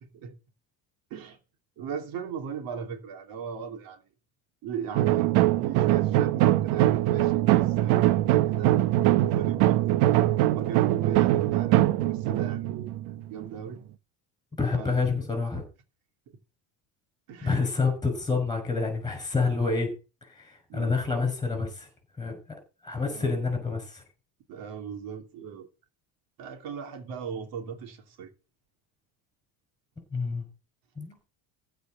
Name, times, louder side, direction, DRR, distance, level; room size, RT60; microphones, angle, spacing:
voice 1, 1.8-4.0 4.6-8.8 9.3-10.1 10.5-12.9 13.3-13.8 14.7-15.1 17.3-17.7 20.7-21.0 23.1-23.4 24.5-25.7 26.4-28.3, right 7 dB, 55° right, 2.8 m, -38 dB
sound 1, 4.9-13.7, right 14 dB, 85° right, 1.1 m, -22 dB
voice 2, 14.6-15.6 17.4-19.9 20.2-21.9 22.2-22.4 22.8-24.0 30.1-30.4 31.0-31.2, left 4 dB, 10° left, 5.7 m, -28 dB
15.0 x 5.0 x 7.7 m
cardioid pair, 170°, 42 cm